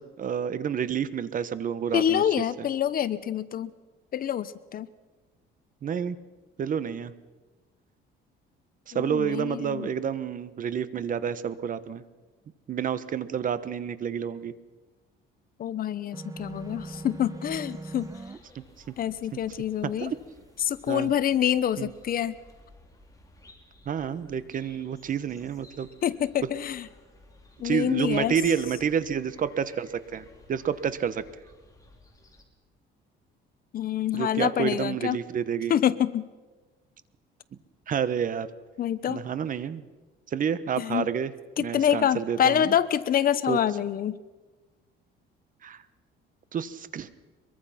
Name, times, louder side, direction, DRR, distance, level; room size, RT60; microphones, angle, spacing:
voice 1, 0.0-2.2 5.8-6.2 6.6-7.1 8.9-12.0 12.7-14.5 18.5-18.6 20.0-20.2 20.9-21.1 21.8-21.9 23.9-25.9 27.6-31.2 34.1-35.7 37.9-38.5 39.1-39.8 40.3-41.3 41.6-42.7 43.5-43.6 45.6-45.8 46.5-47.1, right 7 dB, 40° right, 14 dB, 1.2 m, -29 dB
voice 2, 1.9-3.7 4.1-4.9 8.9-9.9 15.6-18.1 19.0-20.1 20.6-22.4 26.0-26.9 27.6-28.4 33.7-35.2 35.7-36.3 38.8-39.2 40.8-41.1 41.6-44.2, left 10 dB, 45° left, 16 dB, 0.9 m, -26 dB
sound 1, 16.1-18.4, right 2 dB, 15° right, 1.1 m, -40 dB
sound 2, 16.3-32.4, left 1 dB, 15° left, 3.6 m, -56 dB
23.5 x 23.0 x 5.9 m, 1.2 s
cardioid pair, 135°, 21 cm